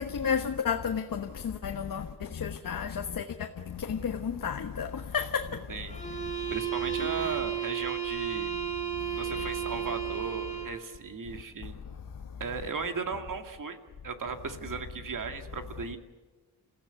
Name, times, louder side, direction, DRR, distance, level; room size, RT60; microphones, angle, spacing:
voice 1, 0.0-2.0 2.4-3.2 3.9-4.9 5.1-5.4, left 7 dB, 55° left, 1.3 m, -31 dB
voice 2, 5.7-6.0 6.5-8.5 9.2-11.7 12.4-16.0, right 5 dB, 55° right, 2.2 m, -36 dB
sound 1, 5.9-10.9, right 8 dB, 20° left, 4.6 m, -33 dB
28.5 x 15.5 x 9.3 m
wide cardioid pair, 120°, 39 cm